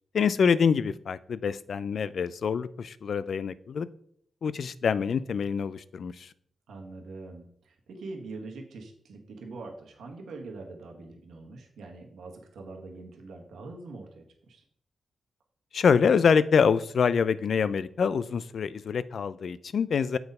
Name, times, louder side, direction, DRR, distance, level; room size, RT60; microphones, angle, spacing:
voice 1, 0.1-3.9 4.4-6.3 15.7-20.2, left 6 dB, 70° left, 16 dB, 0.4 m, -25 dB
voice 2, 6.7-14.6, right 3 dB, 85° right, 2 dB, 1.2 m, -43 dB
6.8 x 4.1 x 5.4 m, 0.65 s
cardioid pair, 55°, 0 cm